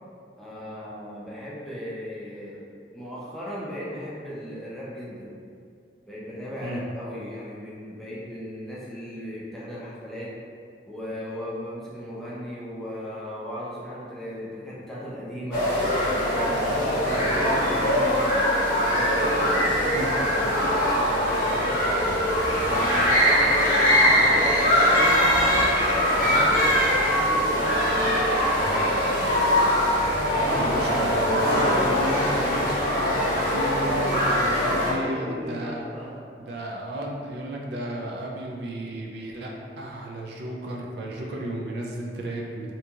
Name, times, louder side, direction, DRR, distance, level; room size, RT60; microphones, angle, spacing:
voice 1, 0.4-2.6 2.9-5.3 6.1-10.3 10.9-15.7 16.2-18.2 18.8-21.9 22.5-26.6 26.9-29.5 34.5-36.3, equal, ahead, -8 dB, 0.4 m, -36 dB
sound 1, 15.5-34.9, equal, 50° left, 0.7 m, -22 dB
voice 2, 30.3-35.8 36.4-42.7, right 1 dB, 60° right, -1 dB, 0.3 m, -33 dB
2.8 x 2.6 x 2.3 m, 2.3 s
head